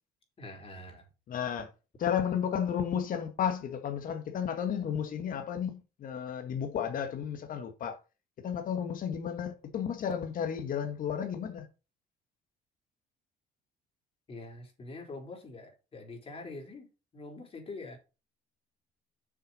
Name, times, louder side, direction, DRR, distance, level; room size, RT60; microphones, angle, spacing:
voice 1, 0.4-1.1 14.3-16.9 17.1-18.0, left 2 dB, 35° left, 4.0 m, -44 dB
voice 2, 1.3-1.7 2.0-8.0 8.4-11.7, left 8 dB, 55° left, 1.9 m, -33 dB
7.3 x 5.9 x 5.6 m
cardioid pair, 110°, 17 cm